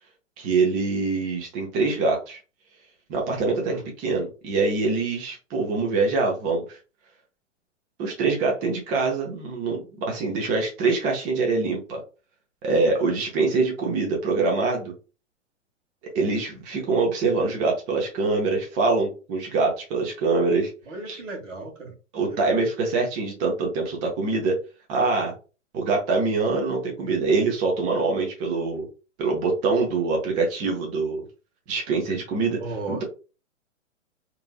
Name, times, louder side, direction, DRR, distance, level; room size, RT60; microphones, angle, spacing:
voice 1, 0.4-2.4 3.1-6.8 8.0-12.0 12.6-14.9 16.1-20.7 21.1-21.2 22.1-24.6 24.9-25.3 25.7-28.9 29.2-31.2 31.7-32.6 32.9-33.0, right 3 dB, 20° right, 0 dB, 0.5 m, -24 dB
voice 2, 20.9-21.9 22.2-22.6 32.6-33.0, right 2 dB, 70° right, 2 dB, 1.4 m, -35 dB
3.0 x 2.4 x 2.2 m, 0.33 s
hypercardioid pair, 120°, 38 cm